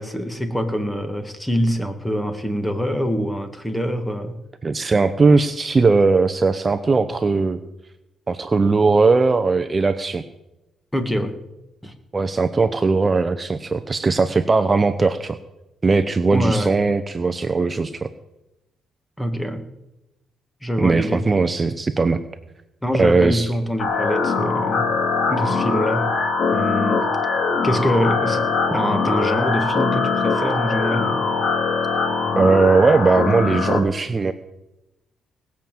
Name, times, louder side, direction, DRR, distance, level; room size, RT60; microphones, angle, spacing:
voice 1, 0.0-4.3 10.9-11.3 11.8-11.9 16.3-16.7 19.2-19.7 20.6-21.2 22.8-24.9 25.3-26.1 26.5-27.1 27.6-31.1, equal, 5° left, 7 dB, 1.9 m, -24 dB
voice 2, 4.6-7.6 8.3-10.2 12.1-15.4 15.8-18.1 20.8-22.2 23.0-23.5 32.4-34.3, right 4 dB, 30° right, 10 dB, 0.7 m, -18 dB
sound 1, 23.8-33.8, left 4 dB, 60° left, 2.8 m, -22 dB
sound 2, 25.9-32.3, left 3 dB, 25° left, 5.0 m, -41 dB
19.0 x 7.2 x 7.7 m, 0.94 s
cardioid pair, 90°, 0 cm